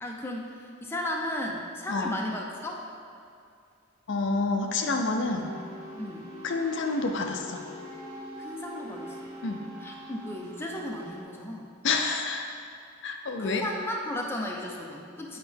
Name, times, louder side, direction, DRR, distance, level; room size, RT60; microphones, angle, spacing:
voice 1, 0.0-2.8 6.0-6.3 8.4-9.2 9.8-11.7 13.4-15.4, left 1 dB, 10° left, -1 dB, 0.5 m, -35 dB
voice 2, 4.1-5.5 6.4-7.6 9.4-9.7 11.8-12.5 13.0-13.6, left 3 dB, 60° left, 3 dB, 0.5 m, -28 dB
sound 1, 5.2-11.2, equal, 75° right, 1.4 m, -43 dB
8.3 x 5.1 x 3.4 m, 2.4 s
head